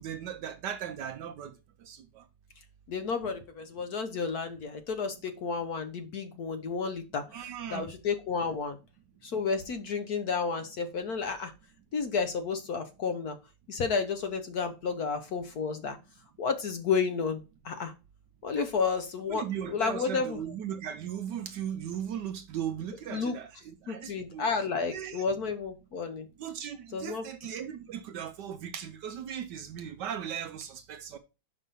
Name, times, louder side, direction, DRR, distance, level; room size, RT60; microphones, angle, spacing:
voice 1, 0.0-1.5 1.8-2.2 7.3-7.9 18.6-18.7 19.3-24.5 24.9-25.3 26.4-31.2, right 9 dB, 70° right, 1.1 m, -37 dB
voice 2, 2.9-7.2 7.7-8.8 9.2-11.5 11.9-13.4 13.7-16.0 16.4-17.9 18.4-20.4 23.1-23.3 23.9-26.3 26.9-27.2, left 5 dB, 60° left, 1.1 m, -31 dB
5.4 x 5.3 x 5.4 m
omnidirectional pair, 2.2 m